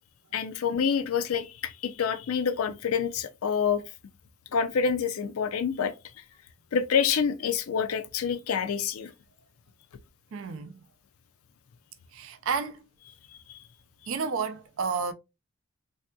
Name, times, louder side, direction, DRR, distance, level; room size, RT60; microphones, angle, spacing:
voice 1, 0.3-3.8 4.5-5.9 6.7-9.1 13.5-13.6, left 6 dB, 80° left, 0.4 m, -27 dB
voice 2, 10.3-10.8 12.1-12.8 14.1-15.1, right 5 dB, 70° right, 0.4 m, -31 dB
3.5 x 2.7 x 2.2 m
head